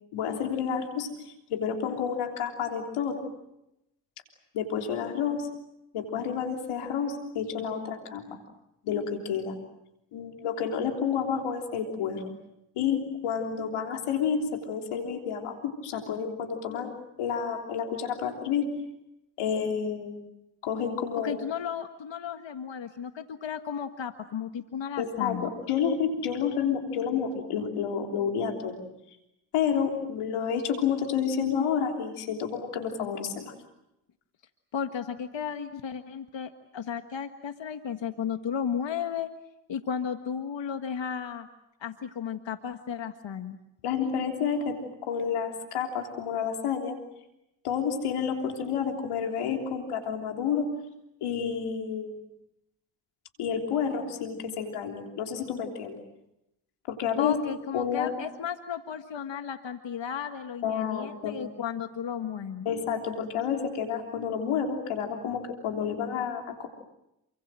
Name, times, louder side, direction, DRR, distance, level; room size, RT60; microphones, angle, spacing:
voice 1, 0.1-1.1 1.5-3.2 4.5-5.5 5.9-8.2 8.8-9.6 10.1-12.3 12.8-16.9 17.2-18.7 19.4-20.2 20.6-21.4 25.0-28.8 29.5-33.5 43.8-47.0 47.6-50.7 51.2-52.2 53.4-56.0 56.9-58.3 60.6-61.4 62.7-66.7, left 7 dB, 90° left, 3 dB, 3.5 m, -30 dB
voice 2, 21.2-25.5 34.7-39.3 39.7-41.5 41.8-43.6 57.2-62.7, left 7 dB, 60° left, 8 dB, 1.7 m, -34 dB
28.5 x 25.0 x 7.6 m, 0.86 s
supercardioid pair, 40°, 49 cm